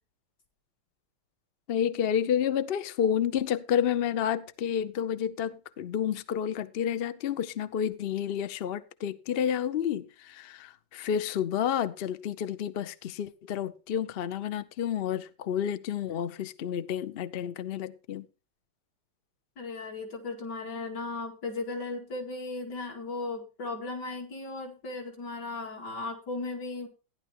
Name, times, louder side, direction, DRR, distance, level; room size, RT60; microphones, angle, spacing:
voice 1, 1.7-18.3, left 9 dB, 90° left, 0.5 m, -30 dB
voice 2, 19.6-26.9, left 3 dB, 65° left, 2.9 m, -36 dB
15.0 x 10.5 x 3.0 m
omnidirectional pair, 2.0 m